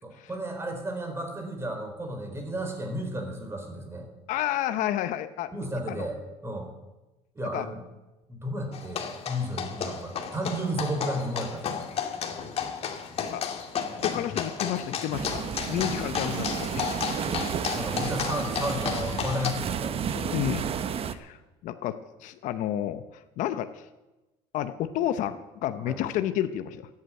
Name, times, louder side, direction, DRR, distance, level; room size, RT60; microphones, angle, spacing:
voice 1, 0.0-4.1 5.5-6.7 7.3-7.8 8.3-11.8 15.7-15.9 17.2-17.5 17.7-20.2 25.8-26.0, equal, 20° right, 4 dB, 4.3 m, -33 dB
voice 2, 4.3-5.5 5.9-6.1 7.5-7.6 13.2-13.4 13.9-15.4 15.7-17.1 20.1-20.7 21.1-23.0 23.4-23.9 24.5-26.9, left 12 dB, 70° left, 11 dB, 0.8 m, -30 dB
sound 1, 8.7-19.5, left 7 dB, 50° left, 2.2 m, -33 dB
sound 2, 15.1-21.1, right 8 dB, 45° right, 1.0 m, -32 dB
14.0 x 8.6 x 8.9 m, 1.1 s
supercardioid pair, 95°, 14 cm